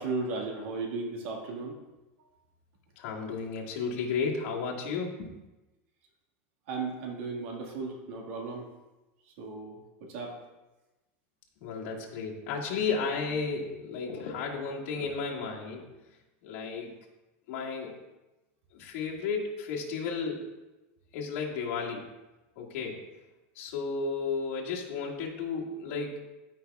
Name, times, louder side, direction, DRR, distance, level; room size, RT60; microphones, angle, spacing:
voice 1, 0.0-1.8 6.7-8.7 9.4-10.4, right 3 dB, 70° right, 0 dB, 1.8 m, -35 dB
voice 2, 3.0-5.4 11.6-15.9 16.4-16.9 17.5-18.0 18.7-20.5 21.1-22.1 22.6-23.0 23.6-26.3, left 5 dB, 60° left, -3 dB, 1.9 m, -33 dB
13.5 x 5.7 x 2.4 m, 1.1 s
supercardioid pair, 155°, 7 cm